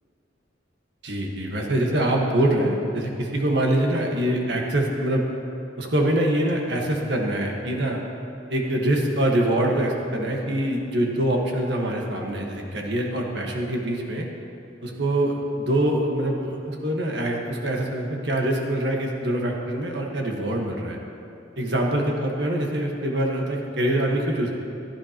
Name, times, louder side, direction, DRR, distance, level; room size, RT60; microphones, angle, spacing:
voice 1, 1.0-5.2 5.8-8.0 8.5-14.3 14.8-21.0 21.6-24.6, right 1 dB, 60° right, 0 dB, 1.5 m, -24 dB
16.0 x 12.0 x 3.0 m, 2.9 s
head